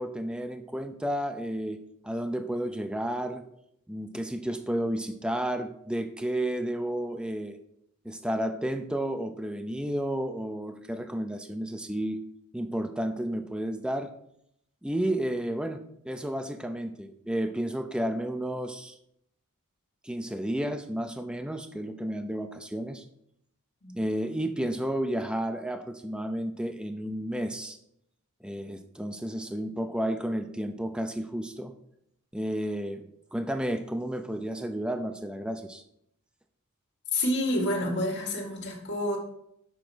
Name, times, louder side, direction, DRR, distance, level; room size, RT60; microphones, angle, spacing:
voice 1, 0.0-1.8 2.0-3.4 3.9-7.6 8.0-12.2 12.5-14.1 14.8-19.0 20.0-23.0 23.9-27.8 28.4-31.7 32.3-33.1 33.3-35.8, right 1 dB, 5° right, 7 dB, 0.4 m, -32 dB
voice 2, 37.1-39.2, left 1 dB, 50° left, 0 dB, 2.0 m, -28 dB
7.0 x 4.9 x 6.1 m, 0.75 s
head